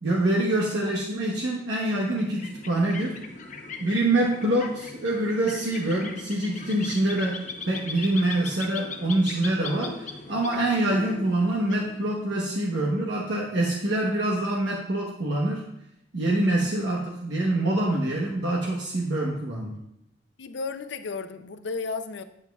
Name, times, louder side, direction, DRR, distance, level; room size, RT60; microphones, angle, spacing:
voice 1, 0.0-3.3 3.8-15.7 16.1-19.8, right 1 dB, 75° right, -3 dB, 1.0 m, -25 dB
sound 1, 2.1-12.5, left 4 dB, 40° left, 0.7 m, -40 dB
voice 2, 20.4-22.2, left 4 dB, 70° left, 10 dB, 0.5 m, -33 dB
9.1 x 8.3 x 2.3 m, 0.80 s
head